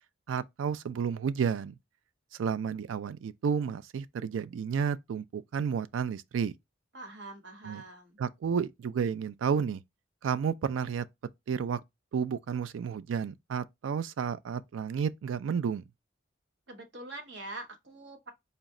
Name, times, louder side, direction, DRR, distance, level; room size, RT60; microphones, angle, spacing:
voice 1, 0.3-1.7 2.3-6.5 7.6-7.8 8.2-9.8 10.2-11.1 11.5-11.8 12.1-15.8, right 7 dB, 85° right, 0.3 m, -31 dB
voice 2, 6.9-8.2 16.7-18.3, right 2 dB, 65° right, 1.1 m, -44 dB
4.0 x 2.2 x 3.6 m
head